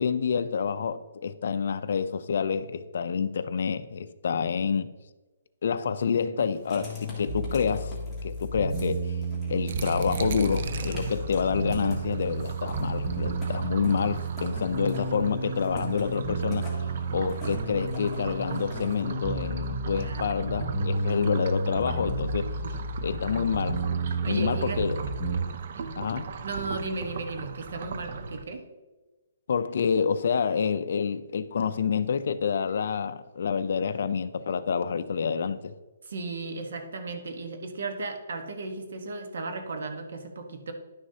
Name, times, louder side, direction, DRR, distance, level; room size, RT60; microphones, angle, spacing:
voice 1, 0.0-4.9 5.6-8.0 8.2-9.2 9.5-16.7 17.1-22.5 23.0-23.8 24.2-25.0 26.0-26.3 29.5-35.7, left 6 dB, 55° left, 0.5 m, -28 dB
Writing, 6.5-19.0, left 1 dB, ahead, 1.5 m, -46 dB
sound 1, 6.8-25.4, right 2 dB, 25° right, 1.6 m, -32 dB
sound 2, 9.7-28.4, right 5 dB, 45° right, 0.5 m, -38 dB
voice 2, 20.0-20.4 22.4-22.8 24.1-24.8 25.8-26.0 26.4-28.6 36.0-40.7, right 3 dB, 60° right, 1.2 m, -35 dB
11.0 x 6.4 x 2.8 m
hypercardioid pair, 175°, 0 cm